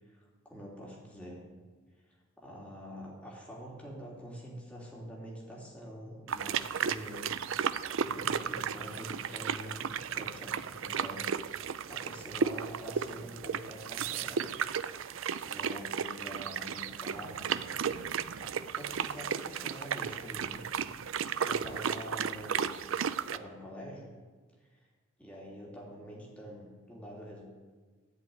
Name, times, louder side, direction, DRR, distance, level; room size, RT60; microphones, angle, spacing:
voice 1, 0.2-1.4 2.1-11.2 11.6-14.4 15.4-17.5 18.4-20.7 21.3-22.8 23.3-24.1 25.2-27.4, equal, 5° left, -4 dB, 2.9 m, -46 dB
sound 1, 6.3-23.4, right 7 dB, 65° right, 0.5 m, -34 dB
15.5 x 5.3 x 9.4 m, 1.4 s
head